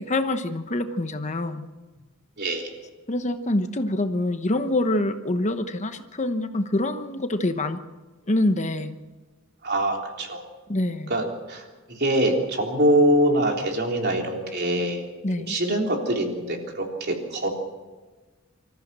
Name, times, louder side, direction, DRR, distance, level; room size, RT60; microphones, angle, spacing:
voice 1, 0.0-1.7 3.1-7.8 8.3-9.0 10.7-11.1 15.2-15.6, left 1 dB, 35° left, 8 dB, 1.0 m, -25 dB
voice 2, 2.4-2.7 9.6-10.4 11.1-11.6 11.9-15.0 15.4-17.5, right 1 dB, 50° right, 1 dB, 3.5 m, -24 dB
25.5 x 14.0 x 7.6 m, 1.3 s
head